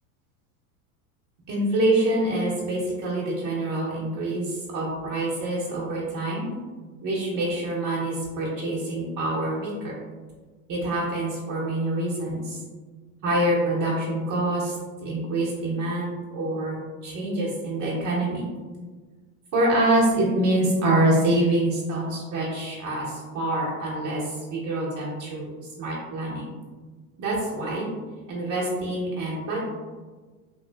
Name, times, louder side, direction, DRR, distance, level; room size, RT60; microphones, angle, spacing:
voice 1, 1.5-6.5 7.0-9.9 10.7-12.6 13.2-14.8 15.0-16.8 17.0-18.5 19.5-25.5 25.8-26.5 27.2-27.9 28.3-29.6, right 1 dB, 40° right, -5 dB, 0.9 m, -26 dB
3.2 x 2.3 x 2.3 m, 1.4 s
hypercardioid pair, 95°, 45 cm